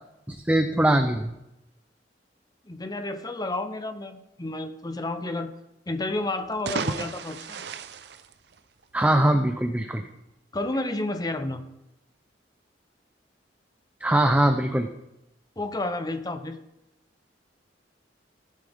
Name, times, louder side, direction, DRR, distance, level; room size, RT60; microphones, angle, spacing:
voice 1, 0.3-1.3 8.9-10.0 14.0-14.9, right 1 dB, 10° right, 6 dB, 0.6 m, -22 dB
voice 2, 2.6-5.5 5.9-7.7 10.5-11.6 15.6-16.6, left 2 dB, 20° left, 8 dB, 0.8 m, -31 dB
sound 1, 6.4-9.0, right 4 dB, 65° right, 0.6 m, -34 dB
15.0 x 11.0 x 3.6 m, 0.90 s
head